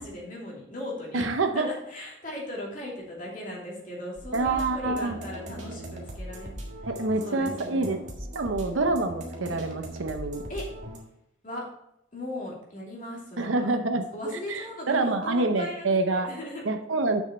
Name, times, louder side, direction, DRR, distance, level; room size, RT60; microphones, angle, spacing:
voice 1, 0.0-6.9 7.2-8.0 10.5-10.7 11.4-11.7 12.1-13.7 14.1-15.8 16.1-16.6, left 1 dB, 40° left, -3 dB, 2.6 m, -38 dB
voice 2, 1.1-1.7 4.3-5.2 6.9-8.0 8.3-10.4 13.4-14.1 14.5-16.3 16.7-17.2, right 3 dB, 85° right, 6 dB, 0.7 m, -26 dB
sound 1, 4.2-11.0, right 1 dB, 40° right, 1.7 m, -39 dB
8.2 x 6.4 x 4.3 m, 0.77 s
head